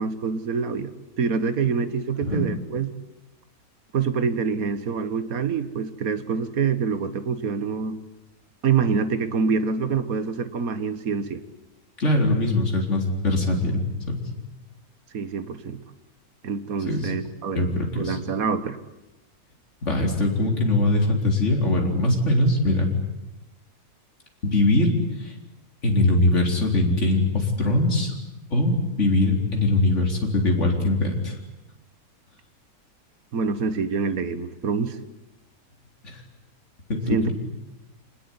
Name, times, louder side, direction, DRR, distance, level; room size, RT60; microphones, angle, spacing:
voice 1, 0.0-2.9 3.9-8.0 8.6-11.4 15.1-15.8 16.4-17.7 18.0-18.8 33.3-35.0 37.1-37.3, right 5 dB, 65° right, 11 dB, 1.9 m, -26 dB
voice 2, 12.0-13.8 14.1-14.2 16.9-17.1 17.5-18.2 19.8-22.9 24.4-24.9 25.2-25.3 25.8-28.1 28.5-28.7 29.0-31.3 36.0-36.2 36.9-37.3, left 2 dB, 50° left, 1 dB, 4.4 m, -22 dB
26.5 x 20.0 x 9.8 m, 0.95 s
omnidirectional pair, 1.6 m